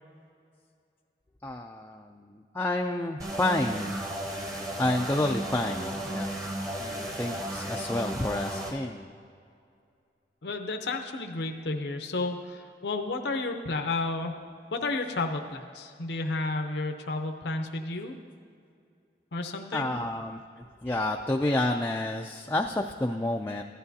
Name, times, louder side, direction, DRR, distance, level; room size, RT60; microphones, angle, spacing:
voice 1, 1.4-4.0 4.8-6.4 6.8-9.1 19.7-23.6, left 1 dB, 15° left, 1 dB, 0.3 m, -30 dB
sound 1, 3.2-8.7, right 1 dB, 20° right, 0.9 m, -34 dB
voice 2, 10.4-14.3 14.7-18.1 19.3-19.9, left 3 dB, 80° left, 4 dB, 0.7 m, -32 dB
15.0 x 11.5 x 2.7 m, 2.3 s
head